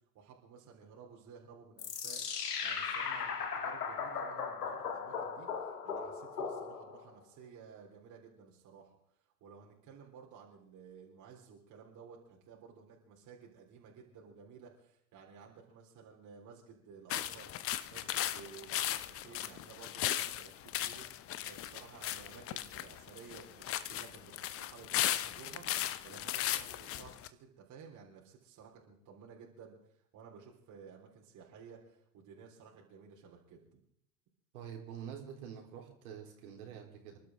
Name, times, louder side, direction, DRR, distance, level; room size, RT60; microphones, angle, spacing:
voice 1, 0.1-2.2 2.6-9.0 9.4-33.8, right 6 dB, 40° right, -2 dB, 3.9 m, -55 dB
sound 1, 1.8-7.1, left 6 dB, 75° left, 2.0 m, -38 dB
sound 2, 17.1-27.3, left 12 dB, 30° left, 0.8 m, -37 dB
voice 2, 34.5-37.2, right 8 dB, 65° right, 1 dB, 4.0 m, -46 dB
28.5 x 12.0 x 3.7 m, 0.69 s
figure-of-eight pair, 85°, 47 cm